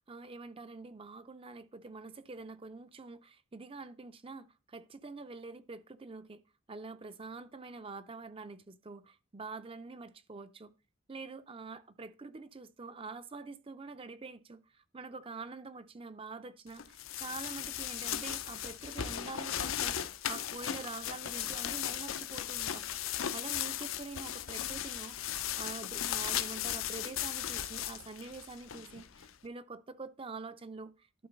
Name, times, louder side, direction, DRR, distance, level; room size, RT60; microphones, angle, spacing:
voice 1, 0.1-6.4 6.7-10.7 11.1-22.8 23.3-31.3, right 3 dB, 25° right, 0.5 m, -46 dB
sound 1, 16.8-29.3, left 10 dB, 75° left, 0.7 m, -37 dB
12.0 x 4.0 x 5.2 m
head